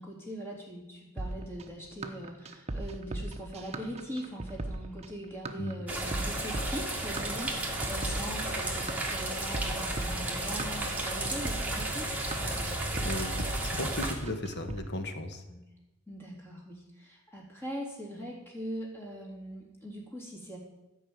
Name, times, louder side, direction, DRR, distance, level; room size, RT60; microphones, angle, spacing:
voice 1, 0.0-12.1 15.5-15.6 16.1-20.6, equal, 10° left, -3 dB, 3.3 m, -41 dB
sound 1, 1.2-14.8, right 2 dB, 30° right, 0.9 m, -38 dB
sound 2, 5.9-14.1, right 1 dB, 5° right, 2.2 m, -33 dB
voice 2, 13.0-15.4, left 1 dB, 55° left, 7 dB, 1.4 m, -36 dB
13.5 x 5.6 x 8.9 m, 1.0 s
head